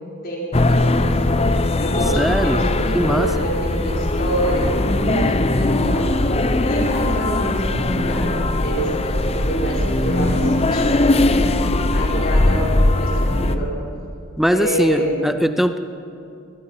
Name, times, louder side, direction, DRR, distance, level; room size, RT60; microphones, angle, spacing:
voice 1, 0.2-1.6 1.8-6.1 6.6-11.5 11.9-13.7 14.5-15.3, right 1 dB, 45° left, -3 dB, 4.5 m, -27 dB
sound 1, 0.5-13.6, left 2 dB, 30° left, 0.8 m, -19 dB
voice 2, 2.2-2.6 2.9-3.3 14.4-15.8, equal, ahead, 10 dB, 0.5 m, -20 dB
21.5 x 21.5 x 5.7 m, 2.6 s
head